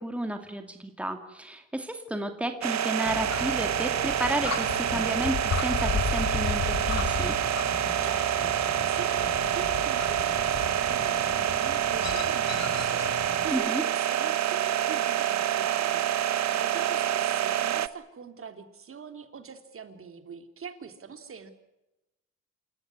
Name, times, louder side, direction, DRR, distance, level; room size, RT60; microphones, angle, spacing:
voice 1, 0.0-7.3 13.5-13.8, right 1 dB, 5° right, 6 dB, 2.6 m, -32 dB
sound 1, 2.6-17.9, right 11 dB, 60° right, 1.1 m, -27 dB
sound 2, 3.1-13.5, left 6 dB, 60° left, 5.3 m, -34 dB
voice 2, 8.0-8.5 8.9-21.5, right 6 dB, 45° right, 8 dB, 3.4 m, -43 dB
28.5 x 14.5 x 9.6 m, 0.95 s
cardioid pair, 90°, 30 cm